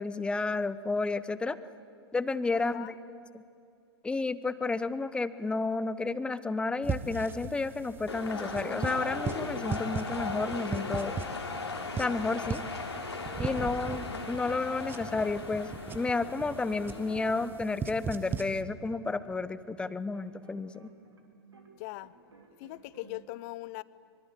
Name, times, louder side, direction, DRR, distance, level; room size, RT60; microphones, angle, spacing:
voice 1, 0.0-1.6 2.1-2.9 3.3-3.4 4.0-11.2 12.0-12.6 13.4-20.9, left 3 dB, 5° left, 15 dB, 0.8 m, -31 dB
voice 2, 2.5-2.9 21.8-22.1 22.6-23.8, left 20 dB, 40° left, 19 dB, 0.7 m, -41 dB
sound 1, 6.8-18.6, right 5 dB, 15° right, 1.0 m, -39 dB
sound 2, 8.1-17.5, left 3 dB, 80° left, 3.0 m, -38 dB
sound 3, 17.0-21.7 22.0-23.2, right 4 dB, 80° right, 3.7 m, -56 dB
24.5 x 24.0 x 8.3 m, 2.5 s
figure-of-eight pair, 105°, 14 cm